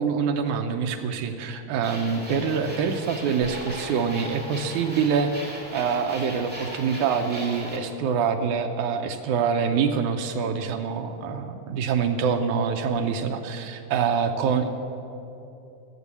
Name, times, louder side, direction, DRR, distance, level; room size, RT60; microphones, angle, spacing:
voice 1, 0.0-14.7, right 6 dB, 75° right, 5 dB, 1.8 m, -25 dB
sound 1, 1.8-7.8, equal, 5° right, 1.9 m, -38 dB
15.0 x 8.2 x 8.3 m, 2.9 s
omnidirectional pair, 4.1 m